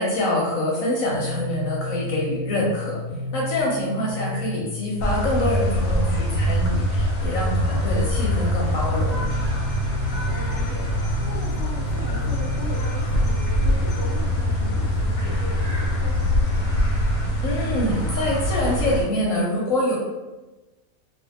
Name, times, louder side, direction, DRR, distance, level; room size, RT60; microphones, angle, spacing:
voice 1, 0.0-3.0 3.3-9.2 17.4-20.0, left 1 dB, 70° left, -3 dB, 0.9 m, -25 dB
sound 1, 1.1-17.1, left 3 dB, 75° right, 1.1 m, -30 dB
voice 2, 3.7-4.1 10.0-16.9, equal, 60° right, -6 dB, 0.8 m, -38 dB
sound 2, 5.0-19.0, equal, 90° left, 1.2 m, -24 dB
2.5 x 2.3 x 2.6 m, 1.1 s
omnidirectional pair, 1.7 m